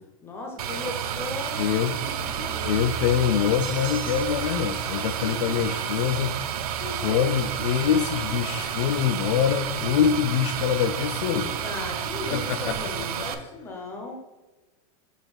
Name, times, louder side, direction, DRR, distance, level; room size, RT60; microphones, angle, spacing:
voice 1, 0.2-3.1 6.8-7.3 11.6-14.2, left 2 dB, 10° left, 2 dB, 0.8 m, -37 dB
sound 1, 0.6-13.3, right 8 dB, 90° right, 0.7 m, -30 dB
voice 2, 1.6-1.9 2.7-6.4 7.0-11.5 12.3-12.8, left 9 dB, 55° left, 9 dB, 0.4 m, -24 dB
sound 2, 3.6-4.6, right 6 dB, 60° right, 1.1 m, -41 dB
6.5 x 3.2 x 4.9 m, 1.2 s
supercardioid pair, 175°, 19 cm